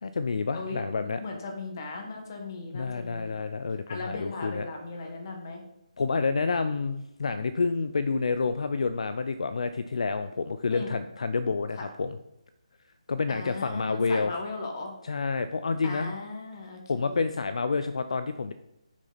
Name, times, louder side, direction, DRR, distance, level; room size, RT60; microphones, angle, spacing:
voice 1, 0.0-1.2 2.7-4.7 6.0-12.2 13.1-14.3 15.0-16.1 16.9-18.5, left 4 dB, 60° left, 11 dB, 0.5 m, -29 dB
voice 2, 0.5-3.4 3.9-5.6 10.7-11.0 11.7-11.8 13.3-14.9 15.8-17.3, left 3 dB, 35° left, 2 dB, 1.7 m, -37 dB
9.8 x 6.2 x 4.1 m, 0.84 s
hypercardioid pair, 165°, 4 cm